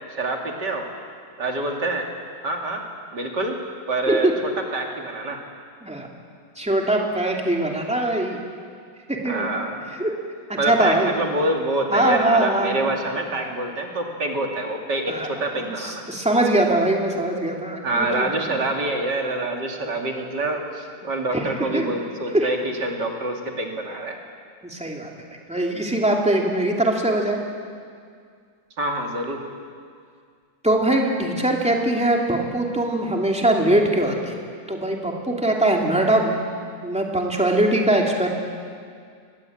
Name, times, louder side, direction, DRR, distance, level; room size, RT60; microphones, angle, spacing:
voice 1, 0.1-0.9 1.4-2.1 2.4-2.8 3.1-3.6 3.9-4.3 4.7-5.4 9.2-9.9 10.6-16.0 17.8-24.2 28.8-29.4, right 2 dB, 65° right, 2 dB, 3.2 m, -26 dB
voice 2, 6.6-8.4 9.1-9.5 10.0-10.1 10.5-11.1 11.9-12.9 15.1-15.3 15.8-18.6 21.3-21.9 22.3-22.5 24.6-25.1 25.5-27.4 30.6-34.4 34.7-36.4 36.8-38.3, right 1 dB, 5° right, 0 dB, 2.7 m, -22 dB
24.0 x 20.0 x 8.8 m, 2.1 s
omnidirectional pair, 2.0 m